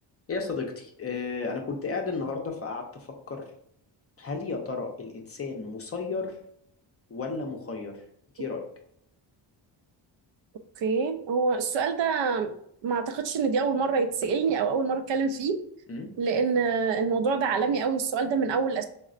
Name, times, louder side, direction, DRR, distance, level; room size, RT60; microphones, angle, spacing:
voice 1, 0.3-3.5 4.2-6.4 7.1-8.0 8.3-8.7 15.9-16.1, left 4 dB, 30° left, 2 dB, 0.6 m, -33 dB
voice 2, 10.8-12.5 12.8-15.6 16.2-18.8, right 5 dB, 65° right, 7 dB, 0.5 m, -26 dB
3.8 x 2.1 x 2.4 m, 0.71 s
cardioid pair, 80°, 48 cm